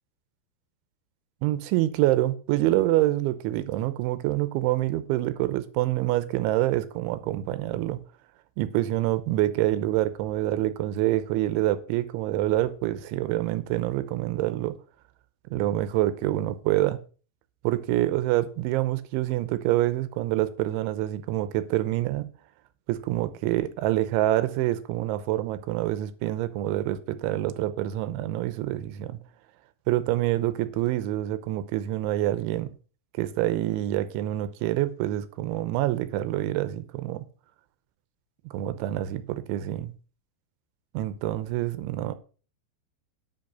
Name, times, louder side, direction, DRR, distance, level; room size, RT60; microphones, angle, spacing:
voice 1, 1.4-8.0 8.6-14.8 15.5-17.0 17.6-22.3 22.9-29.2 29.9-32.7 33.2-37.2 38.5-39.9 40.9-42.1, right 15 dB, 85° right, 3.2 m, -26 dB
11.0 x 5.5 x 6.7 m
omnidirectional pair, 5.4 m